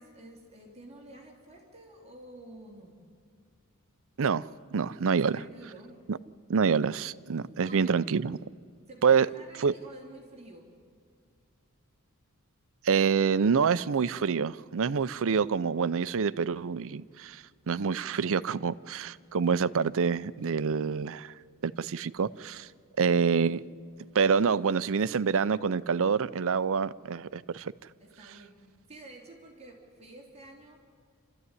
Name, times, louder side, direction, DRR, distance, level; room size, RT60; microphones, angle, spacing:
voice 1, 0.0-3.0 5.1-5.9 7.6-7.9 8.9-10.7 28.0-28.6 28.9-30.8, right 2 dB, 30° right, 3.2 m, -49 dB
voice 2, 4.2-5.4 6.1-6.2 6.5-8.4 9.0-9.3 9.6-9.7 12.8-21.3 21.6-22.7 23.0-23.6 24.1-27.7, right 6 dB, 65° right, 0.5 m, -27 dB
27.5 x 14.0 x 9.6 m
head